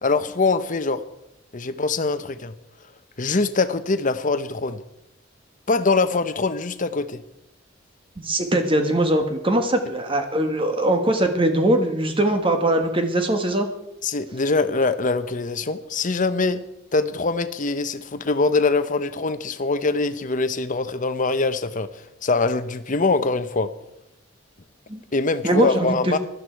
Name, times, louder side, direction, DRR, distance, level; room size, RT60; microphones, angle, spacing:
voice 1, 0.0-1.0 1.5-2.5 3.2-4.8 5.7-7.2 14.0-16.6 16.9-21.9 22.2-23.7 25.1-26.2, left 3 dB, 45° left, 11 dB, 0.8 m, -23 dB
voice 2, 8.2-13.7 24.9-25.0 25.4-26.2, right 1 dB, 25° right, 6 dB, 1.6 m, -21 dB
16.0 x 12.5 x 4.6 m, 0.85 s
head